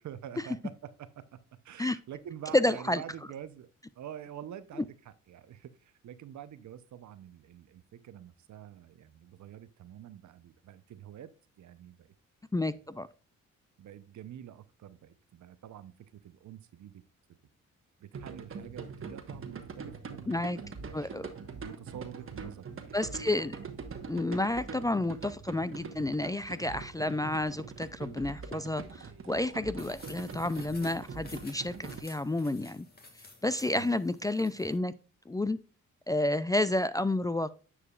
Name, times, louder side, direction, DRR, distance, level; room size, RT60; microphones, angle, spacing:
voice 1, 0.0-1.4 1.6-3.7 3.9-11.3 11.6-12.1 12.7-12.8 13.8-17.0 17.3-17.4 18.0-20.3 20.5-21.1 21.6-23.0 33.7-33.9, right 10 dB, 65° right, 13 dB, 0.8 m, -47 dB
voice 2, 2.5-3.0 12.5-13.1 20.3-20.6 20.9-21.3 22.9-23.6 24.1-32.9 33.4-34.9 35.3-35.6 36.1-37.5, left 2 dB, 10° left, 15 dB, 0.4 m, -30 dB
sound 1, 18.1-32.0, right 5 dB, 45° right, 1.3 m, -43 dB
sound 2, 29.8-34.8, left 3 dB, 30° left, 2.0 m, -53 dB
9.8 x 4.8 x 2.4 m, 0.36 s
supercardioid pair, 60°, 31 cm